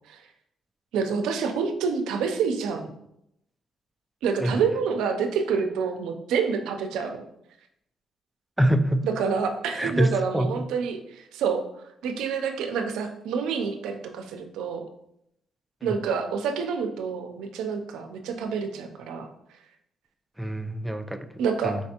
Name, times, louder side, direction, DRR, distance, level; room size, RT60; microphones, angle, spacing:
voice 1, 0.9-2.9 4.2-7.2 9.0-11.6 12.0-14.9 15.8-19.3 21.4-21.8, right 6 dB, 90° right, 5 dB, 0.5 m, -28 dB
voice 2, 8.6-9.1 9.7-10.7 20.4-21.3 21.6-21.8, right 1 dB, 5° right, 8 dB, 0.3 m, -25 dB
4.5 x 3.3 x 2.8 m, 0.79 s
cardioid pair, 90°, 0 cm